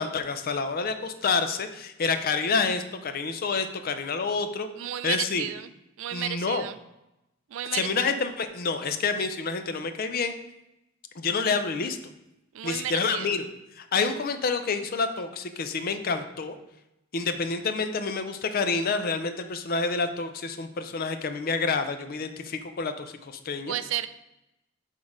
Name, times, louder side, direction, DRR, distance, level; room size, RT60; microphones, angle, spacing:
voice 1, 0.0-4.7 5.0-5.5 6.1-6.6 7.7-10.3 11.2-12.0 12.6-13.4 13.8-16.6 17.1-23.7, left 4 dB, 45° left, 9 dB, 0.5 m, -28 dB
voice 2, 4.8-5.7 6.0-6.8 7.5-8.2 12.5-13.4 23.7-24.1, right 11 dB, 70° right, 13 dB, 0.3 m, -33 dB
6.2 x 3.6 x 4.9 m, 0.90 s
head